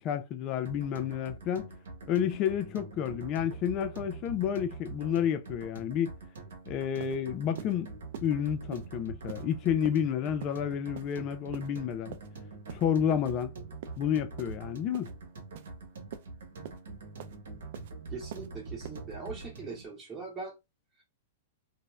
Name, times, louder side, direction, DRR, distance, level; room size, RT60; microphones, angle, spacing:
voice 1, 0.0-1.7 2.1-6.1 6.7-7.9 8.2-12.2 12.7-13.5 14.0-15.1, left 9 dB, 35° left, 0.4 m, -30 dB
sound 1, 0.7-19.9, right 3 dB, 85° right, 0.9 m, -44 dB
sound 2, 6.5-6.6 7.0-7.2 7.6-7.7 8.1-8.3 8.7-8.9 9.3-9.4 9.8-10.0 10.4-10.6 11.0-11.2 11.5-11.7 12.1-12.3 12.7-12.9 13.3-13.4 13.8-14.0 14.4-14.6 14.9-15.1 15.6-15.7 16.1-16.3 16.6-16.8 17.2-17.4 17.7-17.9 18.3-18.5 18.8-19.0, right 9 dB, 65° right, 0.5 m, -44 dB
voice 2, 18.1-20.6, right 4 dB, 15° right, 0.9 m, -41 dB
2.5 x 2.1 x 3.1 m
hypercardioid pair, 135°, 0 cm